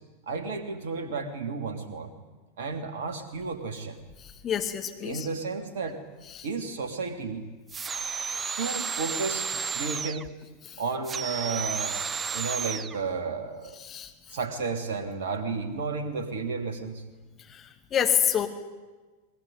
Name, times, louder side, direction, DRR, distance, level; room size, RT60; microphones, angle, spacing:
voice 1, 0.3-2.1 2.6-4.0 5.0-6.0 6.4-7.5 8.6-10.3 10.8-12.0 12.3-13.8 14.3-17.0, right 4 dB, 55° right, 6 dB, 3.1 m, -32 dB
voice 2, 4.2-5.3 6.3-6.5 10.6-10.8 13.8-14.4 17.5-18.5, left 9 dB, 25° left, 5 dB, 2.5 m, -28 dB
sound 1, 7.7-10.3 11.0-13.0, right 5 dB, 20° right, 0.7 m, -32 dB
22.0 x 21.5 x 9.5 m, 1.3 s
figure-of-eight pair, 90°, 0 cm